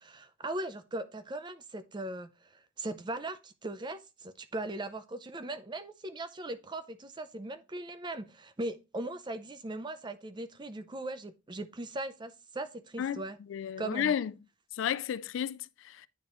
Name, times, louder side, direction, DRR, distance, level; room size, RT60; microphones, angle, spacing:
voice 1, 0.0-13.4 13.8-14.1, right 2 dB, 20° right, 0.5 m, -39 dB
voice 2, 13.5-14.3 14.7-16.1, left 9 dB, 65° left, 0.3 m, -32 dB
9.3 x 3.7 x 3.0 m
head